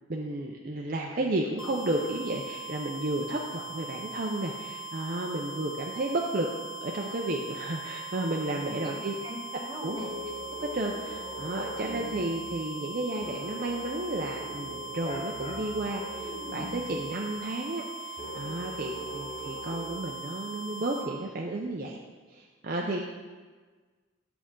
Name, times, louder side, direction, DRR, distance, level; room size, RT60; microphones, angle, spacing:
voice 1, 0.1-6.5 6.8-9.1 9.8-10.0 10.6-22.0 22.3-23.0, right 2 dB, 45° right, 0 dB, 0.6 m, -32 dB
sound 1, 1.6-21.1, right 3 dB, 90° left, 1.5 m, -40 dB
voice 2, 8.7-10.2 22.8-23.0, left 1 dB, 20° right, -1 dB, 1.1 m, -41 dB
sound 2, 9.9-12.6 13.2-17.0 18.2-19.9, left 1 dB, 35° left, 1.1 m, -41 dB
8.6 x 6.9 x 3.7 m, 1.4 s
head